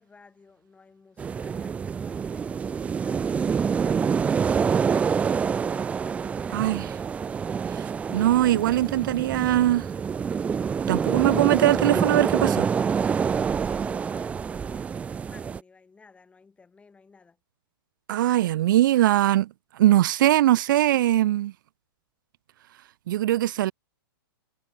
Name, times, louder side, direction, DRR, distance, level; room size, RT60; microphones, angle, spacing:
voice 1, 0.0-4.1 4.4-7.1 13.5-17.4, left 4 dB, 10° left, 7.2 m, -54 dB
sound 1, 1.2-15.6, right 6 dB, 10° right, 0.4 m, -26 dB
voice 2, 6.5-6.9 7.7-9.9 10.9-12.7 18.1-19.5 19.7-21.5 23.1-23.7, right 14 dB, 60° right, 0.7 m, -21 dB
hypercardioid pair, 140°, 12 cm